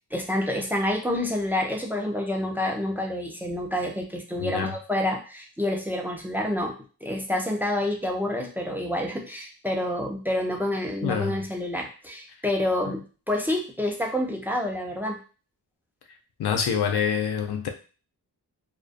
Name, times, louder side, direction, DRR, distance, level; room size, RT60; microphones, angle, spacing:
voice 1, 0.1-6.7 7.0-15.2, left 1 dB, 5° right, 0.4 m, -28 dB
voice 2, 4.4-4.7 11.0-11.3 16.4-17.7, left 7 dB, 90° left, 0.5 m, -26 dB
2.5 x 2.2 x 2.4 m
wide cardioid pair, 105°, 39 cm